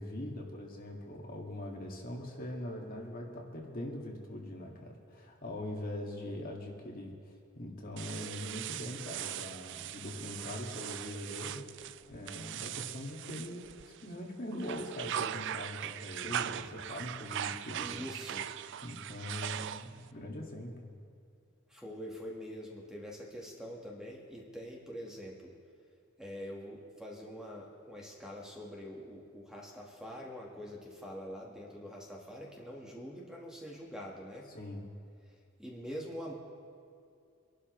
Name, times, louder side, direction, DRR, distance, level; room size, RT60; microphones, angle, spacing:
voice 1, 0.0-11.7 12.1-18.1 18.8-20.9 34.5-34.8, left 1 dB, 40° left, 0 dB, 1.9 m, -42 dB
sound 1, 8.0-14.1 14.5-20.1, right 10 dB, 55° right, 0.4 m, -40 dB
voice 2, 17.8-18.5 21.7-25.6 26.2-34.5 35.6-36.3, equal, 5° right, -2 dB, 1.5 m, -44 dB
24.5 x 12.0 x 3.2 m, 2.4 s
head